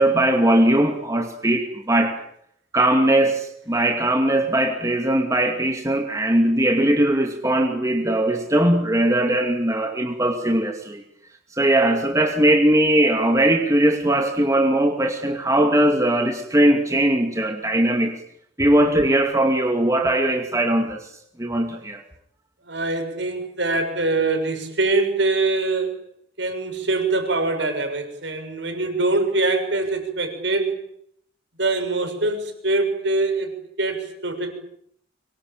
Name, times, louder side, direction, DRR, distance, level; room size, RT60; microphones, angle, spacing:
voice 1, 0.0-2.2 2.7-11.0 11.5-18.1 18.6-21.1 21.4-22.0, right 1 dB, 15° right, 4 dB, 2.5 m, -20 dB
voice 2, 22.7-26.0 26.4-30.8 31.6-34.5, right 2 dB, 65° right, 6 dB, 7.0 m, -23 dB
25.5 x 23.5 x 9.0 m, 0.69 s
head